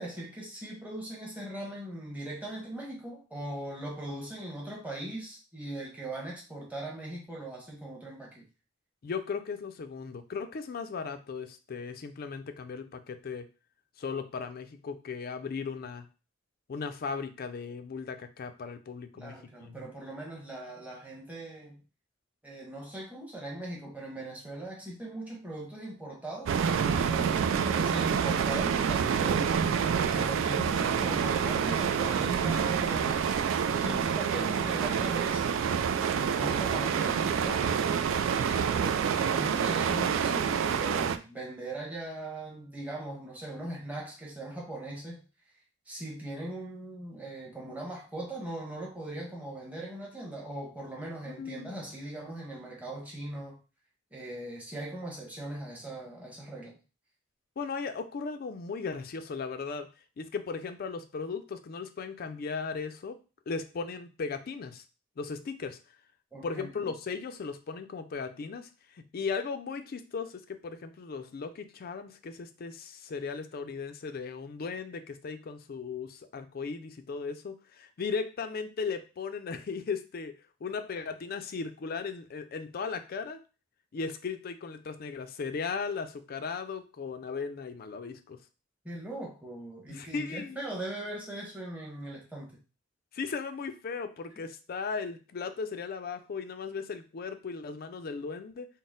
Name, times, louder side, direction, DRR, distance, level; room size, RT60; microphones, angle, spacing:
voice 1, 0.0-8.5 19.1-21.8 22.4-29.6 30.1-33.2 33.8-35.8 36.1-37.7 38.3-45.2 45.9-53.6 54.1-56.7 66.3-66.9 88.8-92.6, right 1 dB, 10° right, -4 dB, 1.2 m, -40 dB
voice 2, 9.0-13.5 14.0-16.1 16.7-19.8 51.3-51.8 57.6-59.9 60.2-63.2 63.5-64.8 65.2-65.8 66.4-80.3 80.6-83.4 83.9-88.4 89.9-90.6 93.1-98.7, left 5 dB, 50° left, 9 dB, 0.4 m, -37 dB
sound 1, 26.5-41.2, right 7 dB, 80° right, 0.3 m, -27 dB
4.0 x 2.0 x 3.7 m, 0.33 s
head